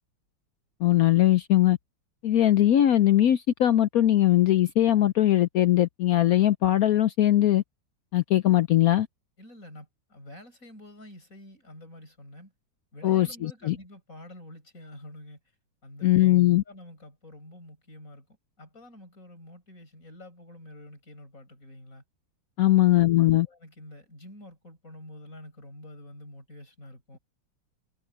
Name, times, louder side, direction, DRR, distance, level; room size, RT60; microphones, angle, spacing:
voice 1, 0.8-1.8 2.2-7.6 8.1-9.1 13.0-13.8 16.0-16.6 22.6-23.5, left 13 dB, 70° left, 0.8 m, -20 dB
voice 2, 9.4-12.5 12.9-15.4 15.8-16.4 16.7-22.0 23.2-27.2, left 1 dB, 40° left, 8.2 m, -48 dB
omnidirectional pair, 2.1 m